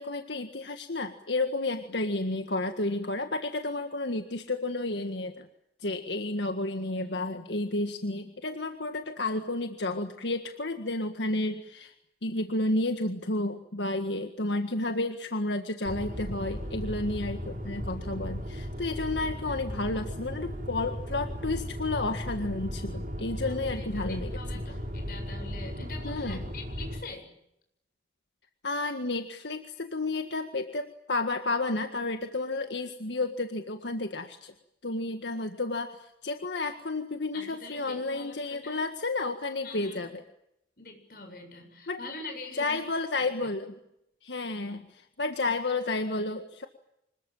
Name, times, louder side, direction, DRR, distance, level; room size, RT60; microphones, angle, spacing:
voice 1, 0.0-5.5 5.8-11.9 12.2-24.3 26.0-26.4 28.6-34.5 34.8-40.2 41.9-42.0 42.6-43.7 44.2-46.7, left 2 dB, 85° left, 6 dB, 1.8 m, -31 dB
sound 1, 15.8-27.0, equal, 45° right, 5.5 m, -36 dB
voice 2, 23.4-27.3 37.3-38.8 39.6-40.1 40.8-42.9 43.2-43.3, left 3 dB, 55° left, 5 dB, 7.8 m, -44 dB
26.5 x 21.5 x 9.1 m, 0.81 s
head